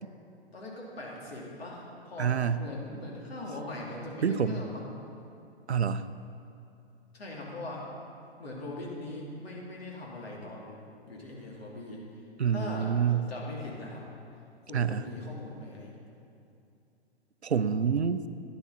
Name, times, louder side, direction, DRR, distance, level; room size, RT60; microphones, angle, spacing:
voice 1, 0.5-4.9 7.1-7.8 8.4-10.8 11.1-12.0 12.5-14.0 14.6-15.9, left 2 dB, 65° left, -3 dB, 2.9 m, -40 dB
voice 2, 2.2-2.6 4.2-4.6 5.7-6.1 12.4-13.3 14.7-15.0 17.4-18.2, right 7 dB, 85° right, 12 dB, 0.6 m, -27 dB
11.5 x 10.0 x 4.1 m, 2.7 s
figure-of-eight pair, 120°, 32 cm